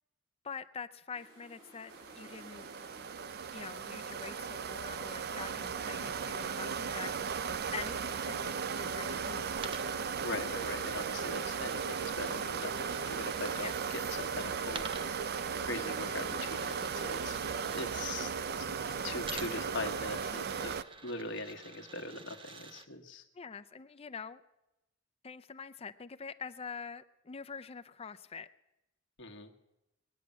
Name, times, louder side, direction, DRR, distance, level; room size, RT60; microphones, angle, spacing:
voice 1, 0.4-2.7 3.5-7.2 7.7-9.6 13.6-13.7 23.3-24.4 25.2-28.5, left 5 dB, 30° left, 10 dB, 0.5 m, -45 dB
sound 1, 1.1-18.1, right 1 dB, 80° right, 6.5 m, -60 dB
sound 2, 1.9-20.8, right 6 dB, 50° right, 0.5 m, -36 dB
Coin (dropping), 9.5-13.8 14.7-18.2 19.2-22.9, right 4 dB, 25° right, 0.8 m, -49 dB
voice 2, 10.2-17.4 17.7-18.3 18.6-20.7 21.0-23.2 29.2-29.5, left 2 dB, 65° left, 4 dB, 1.4 m, -41 dB
20.5 x 7.4 x 9.4 m, 0.94 s
head